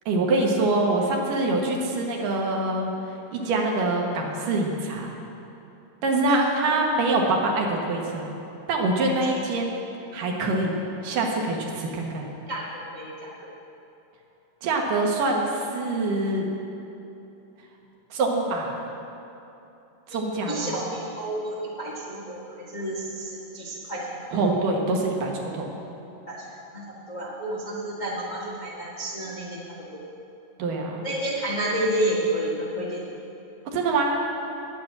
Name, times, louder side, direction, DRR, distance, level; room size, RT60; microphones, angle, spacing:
voice 1, 0.1-2.9 3.3-5.1 6.0-8.4 8.7-9.8 10.1-12.3 14.6-16.5 18.1-18.8 20.1-20.8 24.3-25.8 30.6-31.0 33.7-34.2, right 2 dB, 75° right, 0 dB, 2.9 m, -25 dB
voice 2, 12.5-13.3 20.1-20.2 20.5-22.4 22.7-24.3 26.3-26.4 26.7-26.8 27.1-29.6 29.9-30.0 31.0-33.0, right 1 dB, 40° left, -6 dB, 0.6 m, -30 dB
10.5 x 8.6 x 7.6 m, 3.0 s
omnidirectional pair, 3.9 m